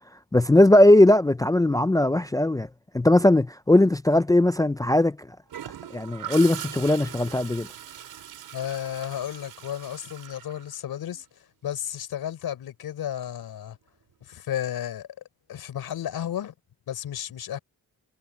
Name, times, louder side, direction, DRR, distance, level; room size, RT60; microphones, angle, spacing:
voice 1, 0.3-2.7 2.9-5.2 5.9-7.7, left 1 dB, 10° left, 0.5 m, -19 dB
Gurgling / Toilet flush, 5.5-11.2 13.2-13.5, right 10 dB, 75° right, 5.0 m, -41 dB
voice 2, 8.5-11.2 11.6-13.8 14.3-15.1 15.5-16.5 16.9-17.6, left 10 dB, 85° left, 4.1 m, -33 dB
cardioid pair, 110°, 36 cm